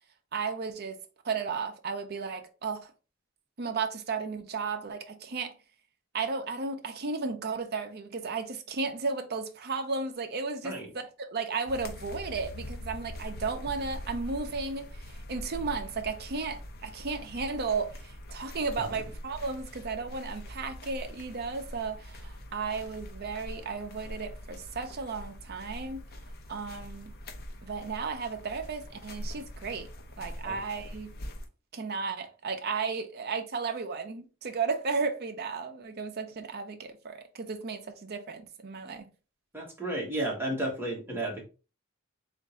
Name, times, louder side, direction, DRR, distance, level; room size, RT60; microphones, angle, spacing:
voice 1, 0.3-1.0 1.2-2.9 3.6-5.6 6.1-26.0 26.5-27.1 27.6-29.9 30.2-31.1 31.7-39.1, right 4 dB, 50° right, 0.6 m, -34 dB
sound 1, 11.7-31.5, left 1 dB, 50° left, 0.7 m, -43 dB
voice 2, 39.5-41.4, right 1 dB, 10° right, 1.3 m, -32 dB
3.5 x 2.5 x 4.1 m
head